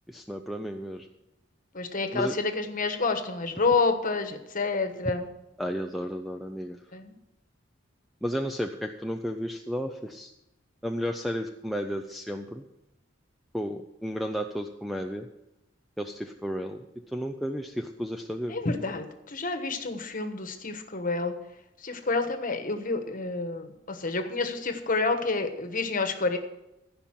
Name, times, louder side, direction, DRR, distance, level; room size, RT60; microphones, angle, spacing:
voice 1, 0.1-1.1 2.1-2.3 5.6-6.8 8.2-10.3 10.8-12.6 13.5-15.3 16.0-18.6, equal, ahead, 5 dB, 0.5 m, -33 dB
voice 2, 1.7-5.3 6.9-7.1 18.5-21.3 21.8-26.4, left 3 dB, 45° left, 7 dB, 1.2 m, -29 dB
15.0 x 5.4 x 7.5 m, 0.92 s
head